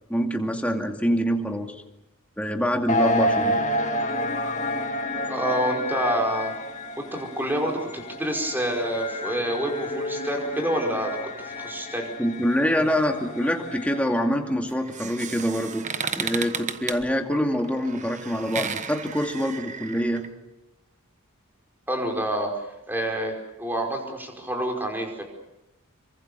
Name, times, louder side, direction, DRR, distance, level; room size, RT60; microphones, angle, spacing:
voice 1, 0.1-1.7 2.4-3.6 12.2-15.8 16.2-20.2, equal, 5° left, 3 dB, 2.4 m, -25 dB
sound 1, 2.9-14.3, left 1 dB, 35° left, 2.0 m, -30 dB
voice 2, 5.3-6.5 7.0-11.2 11.4-12.1 21.9-22.5 22.9-25.2, right 1 dB, 10° right, 2 dB, 5.1 m, -27 dB
sound 2, 14.7-20.3, right 6 dB, 35° right, 1.2 m, -34 dB
27.0 x 24.0 x 7.0 m, 0.90 s
head